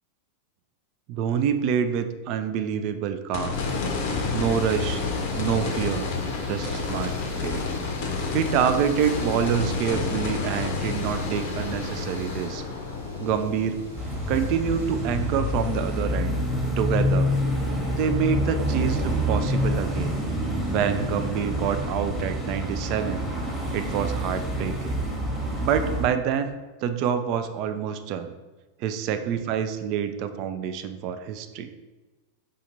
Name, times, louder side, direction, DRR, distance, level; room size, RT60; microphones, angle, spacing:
voice 1, 1.1-3.6 4.3-5.0 5.3-6.1 6.5-7.1 7.4-7.6 8.3-12.6 13.2-13.8 14.3-16.3 16.8-17.3 18.0-20.2 20.7-23.3 23.7-25.0 25.6-26.5 26.8-28.3 28.8-31.7, right 8 dB, 40° right, 9 dB, 0.3 m, -27 dB
sound 1, 3.3-15.7 16.1-16.2 19.6-19.7, left 4 dB, 50° left, 0.6 m, -30 dB
sound 2, 3.5-16.0, right 1 dB, 80° right, 1.4 m, -46 dB
sound 3, 14.0-26.1, equal, 5° left, 0.9 m, -27 dB
4.9 x 2.5 x 2.8 m, 1.2 s
figure-of-eight pair, 90°, 0 cm